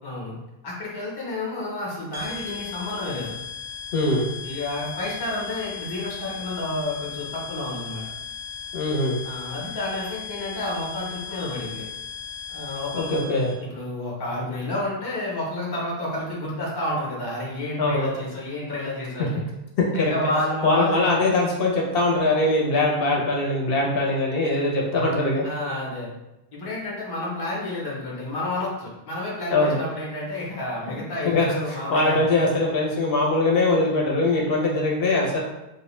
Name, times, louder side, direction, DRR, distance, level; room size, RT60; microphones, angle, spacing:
voice 1, 0.0-0.3 0.6-3.3 4.4-8.1 9.2-11.9 12.5-13.2 13.6-19.4 19.9-21.1 25.4-26.1 26.5-32.2, left 1 dB, 30° left, -4 dB, 0.5 m, -30 dB
sound 1, 2.1-13.5, left 8 dB, 55° right, 0.5 m, -37 dB
voice 2, 3.9-4.3 8.7-9.2 12.9-13.5 17.8-18.1 19.9-20.1 20.6-25.4 29.5-29.8 30.9-35.4, left 2 dB, 70° left, -2 dB, 0.7 m, -22 dB
2.3 x 2.1 x 3.0 m, 0.94 s
omnidirectional pair, 1.0 m